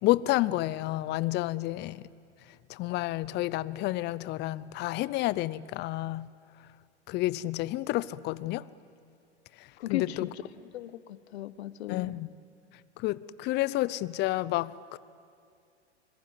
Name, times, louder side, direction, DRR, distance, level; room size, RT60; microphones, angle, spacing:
voice 1, 0.0-2.0 2.7-6.3 7.1-8.6 9.9-10.3 11.9-12.3 13.0-15.0, left 17 dB, 30° left, 19 dB, 0.6 m, -30 dB
voice 2, 9.8-10.4 10.7-12.2, left 13 dB, 65° left, 16 dB, 1.1 m, -36 dB
26.0 x 21.0 x 9.5 m, 2.4 s
hypercardioid pair, 115°, 35 cm